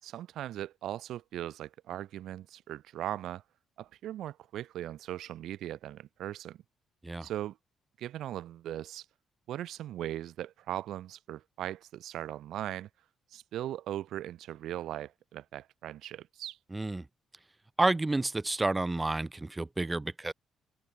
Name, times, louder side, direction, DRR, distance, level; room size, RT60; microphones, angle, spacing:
voice 1, 0.0-3.4 3.8-6.6 7.2-7.6 8.0-9.1 9.5-12.9 13.3-16.6, right 12 dB, 80° right, 5.2 m, -39 dB
voice 2, 16.7-17.0 17.8-20.3, right 2 dB, 15° right, 4.0 m, -30 dB
cardioid pair, 100°, 0 cm